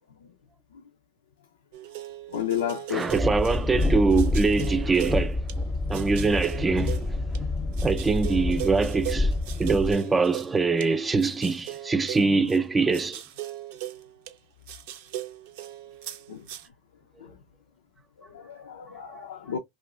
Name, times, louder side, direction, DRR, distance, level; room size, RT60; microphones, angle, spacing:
sound 1, 1.7-5.6 5.9-7.4 7.7-10.9 11.2-14.4 14.7-16.7, right 14 dB, 65° right, 0.6 m, -38 dB
voice 1, 2.3-3.1 12.2-12.4 16.3-16.5 17.2-17.4 18.3-19.6, left 9 dB, 80° left, 0.5 m, -32 dB
voice 2, 2.9-5.4 5.9-7.0 7.8-9.3 9.6-13.2, right 4 dB, 15° right, 0.4 m, -24 dB
Train, 3.1-9.9, left 2 dB, 15° left, 0.7 m, -28 dB
2.5 x 2.3 x 3.1 m
hypercardioid pair, 95°, 0 cm